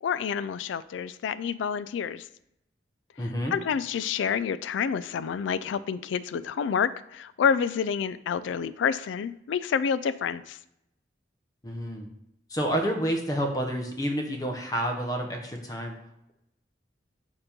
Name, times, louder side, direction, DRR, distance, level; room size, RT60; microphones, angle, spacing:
voice 1, 0.0-2.3 3.5-10.6, left 7 dB, 85° left, 15 dB, 0.3 m, -28 dB
voice 2, 3.2-3.5 11.6-12.1 12.5-15.9, equal, 20° left, 3 dB, 0.8 m, -29 dB
6.7 x 2.9 x 5.2 m, 0.82 s
head